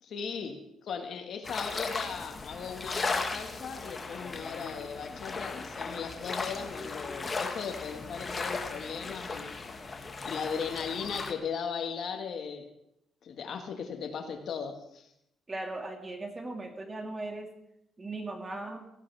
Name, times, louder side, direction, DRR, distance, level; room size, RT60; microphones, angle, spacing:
voice 1, 0.0-9.5 10.3-12.7 13.2-15.1, left 6 dB, 65° left, 5 dB, 1.7 m, -37 dB
sound 1, 1.4-11.3, left 3 dB, 30° left, 1.7 m, -37 dB
voice 2, 15.5-17.5 18.0-18.9, right 2 dB, 25° right, 3 dB, 2.2 m, -38 dB
17.0 x 15.5 x 3.5 m, 0.81 s
cardioid pair, 90°, 0 cm